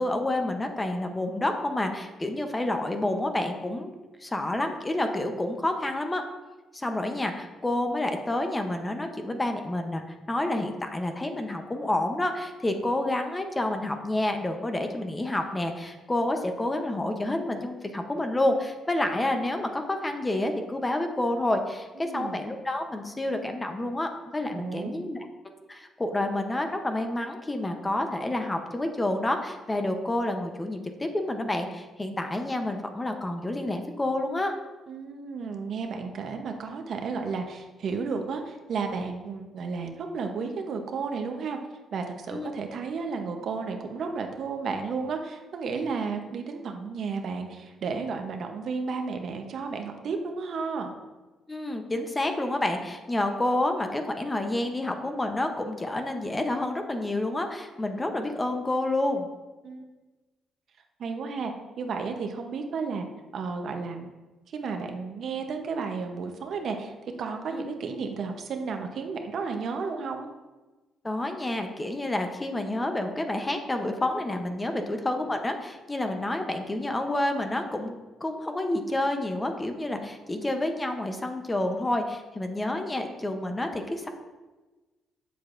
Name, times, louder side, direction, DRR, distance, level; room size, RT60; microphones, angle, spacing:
voice 1, 0.0-3.9 4.2-6.2 6.7-25.3 25.7-34.5 42.3-42.5 51.5-59.3 67.5-67.6 71.0-84.1, left 1 dB, 20° left, 5 dB, 0.8 m, -29 dB
voice 2, 22.0-22.4 24.5-25.0 34.9-41.6 41.9-50.9 59.6-59.9 61.0-61.5 61.8-63.0 63.3-64.1 64.5-66.9 67.2-70.3 74.7-74.8, right 5 dB, 65° right, 5 dB, 0.8 m, -33 dB
7.8 x 6.8 x 2.6 m, 1.2 s
cardioid pair, 90°, 0 cm